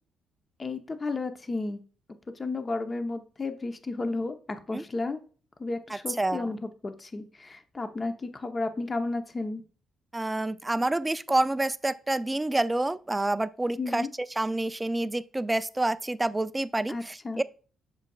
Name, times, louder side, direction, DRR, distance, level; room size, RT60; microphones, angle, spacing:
voice 1, 0.6-1.8 2.4-4.4 4.7-5.2 5.6-6.6 6.8-7.2 7.5-9.6 13.8-14.1 16.9-17.4, left 3 dB, 30° left, 0.9 m, -32 dB
voice 2, 5.9-6.6 10.1-17.4, right 2 dB, 15° right, 0.4 m, -28 dB
7.3 x 6.1 x 2.4 m
cardioid pair, 90°, 0 cm